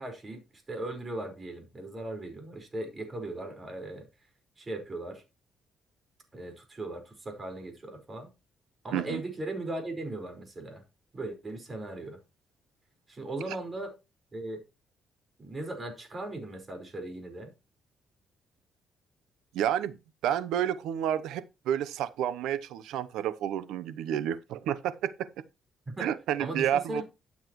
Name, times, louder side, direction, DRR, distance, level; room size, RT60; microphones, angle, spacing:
voice 1, 0.0-4.0 4.6-5.2 6.3-8.3 8.8-10.8 11.1-12.2 13.1-13.9 14.3-14.6 15.4-17.5 26.0-26.1 26.4-27.0, right 2 dB, 30° right, 5.0 m, -38 dB
voice 2, 19.5-25.1 26.0-27.0, right 10 dB, 90° right, 0.8 m, -30 dB
12.5 x 7.4 x 3.1 m
cardioid pair, 90°, 0 cm